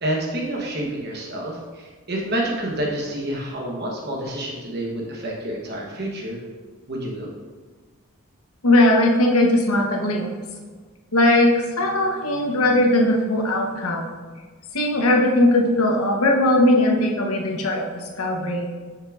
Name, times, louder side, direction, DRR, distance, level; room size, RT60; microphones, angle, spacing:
voice 1, 0.0-6.4 6.9-7.3, right 1 dB, 50° right, -2 dB, 1.0 m, -28 dB
voice 2, 8.6-10.3 11.1-14.1 14.7-18.7, left 1 dB, 85° left, 1 dB, 0.9 m, -19 dB
6.5 x 5.9 x 2.4 m, 1.4 s
head